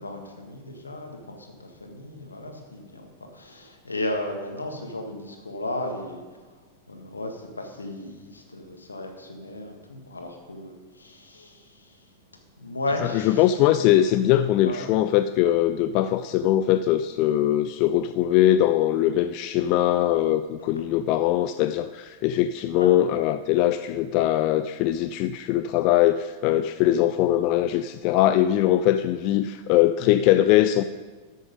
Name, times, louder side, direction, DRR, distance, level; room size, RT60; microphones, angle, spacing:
voice 1, 0.0-6.5 6.9-12.1 12.6-13.5 14.6-14.9 22.8-22.9, left 1 dB, 80° left, 3 dB, 1.6 m, -35 dB
voice 2, 13.0-30.8, left 12 dB, 45° left, 11 dB, 0.3 m, -21 dB
13.0 x 6.4 x 5.2 m, 1.4 s
figure-of-eight pair, 90°, 0 cm